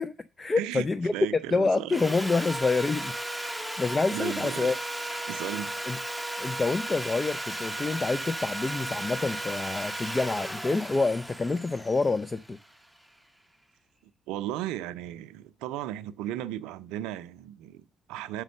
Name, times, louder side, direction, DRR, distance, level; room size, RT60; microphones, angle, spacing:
voice 1, 0.0-1.1 1.5-3.1 3.8-4.8 5.8-6.0 6.4-12.6, left 3 dB, 30° left, 0.5 m, -27 dB
voice 2, 0.6-2.0 4.1-4.7 5.3-5.7 14.3-18.4, right 12 dB, 80° right, 0.5 m, -35 dB
Sawing, 1.9-13.0, right 1 dB, ahead, 0.9 m, -35 dB
6.3 x 5.2 x 6.5 m
hypercardioid pair, 55°, 0 cm